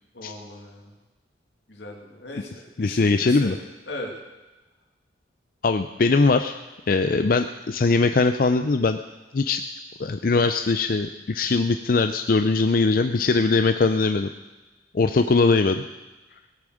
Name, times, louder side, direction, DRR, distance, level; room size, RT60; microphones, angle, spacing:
voice 1, 0.1-0.9 1.7-3.5 3.9-4.1 15.2-15.4, left 1 dB, 85° left, 1 dB, 2.6 m, -38 dB
voice 2, 2.8-3.5 5.6-6.5 6.9-9.0 9.3-9.6 10.0-14.3 14.9-15.8, left 3 dB, 55° left, 8 dB, 0.5 m, -21 dB
17.0 x 8.5 x 6.4 m, 1.2 s
head